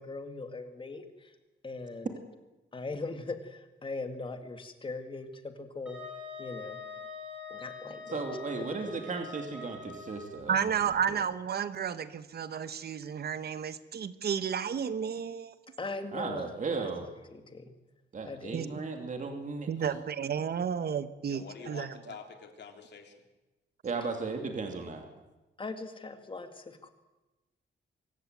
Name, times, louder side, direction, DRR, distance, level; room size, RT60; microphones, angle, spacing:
voice 1, 0.0-1.4 1.6-2.1 2.7-6.0 6.4-6.8 7.5-8.3 8.5-8.9 15.8-17.7 18.2-18.6 25.6-26.9, left 3 dB, 30° left, 7 dB, 2.2 m, -40 dB
Wind instrument woodwind instrument, 5.9-10.5, left 4 dB, 5° right, 7.2 m, -44 dB
voice 2, 8.1-10.6 11.1-11.2 16.1-17.1 18.1-20.0 23.8-25.1, right 4 dB, 45° right, 4 dB, 2.8 m, -36 dB
voice 3, 10.5-15.5 18.5-18.7 19.7-21.9, right 7 dB, 60° right, 12 dB, 1.2 m, -32 dB
voice 4, 21.2-23.2, left 6 dB, 70° left, 5 dB, 3.4 m, -47 dB
25.0 x 14.5 x 9.3 m, 1.1 s
wide cardioid pair, 170°, 18 cm